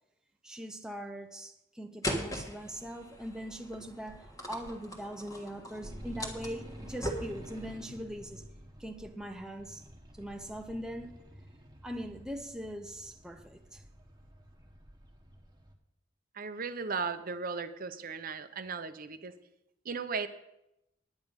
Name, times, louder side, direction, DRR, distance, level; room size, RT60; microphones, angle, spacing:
voice 1, 0.4-8.4 8.8-9.8 10.1-11.2 11.8-13.8, equal, 5° right, 0.6 m, -41 dB
sound 1, 2.0-7.8, equal, 20° left, 1.5 m, -40 dB
sound 2, 5.8-15.7, equal, 20° right, 1.3 m, -50 dB
voice 2, 16.3-19.3 19.8-20.3, right 5 dB, 45° right, 0.7 m, -36 dB
10.5 x 9.2 x 5.3 m
head